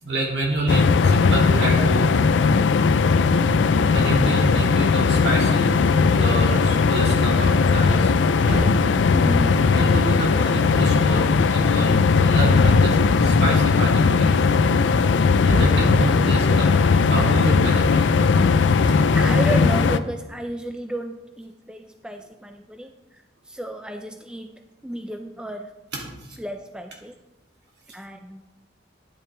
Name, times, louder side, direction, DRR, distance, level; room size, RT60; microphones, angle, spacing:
voice 1, 0.0-2.2 3.9-8.1 9.7-14.3 15.5-18.1 25.9-26.0, right 2 dB, 65° right, -2 dB, 2.7 m, -28 dB
sound 1, 0.7-20.0, left 4 dB, 85° left, 0.4 m, -18 dB
sound 2, 8.4-9.4 12.6-13.2 15.5-16.3, right 1 dB, 90° right, 2.2 m, -30 dB
voice 2, 9.1-9.6 19.1-24.5 24.8-25.7 26.4-27.1 27.9-28.4, right 1 dB, 5° right, 5 dB, 0.4 m, -32 dB
10.5 x 8.9 x 3.4 m, 1.0 s
head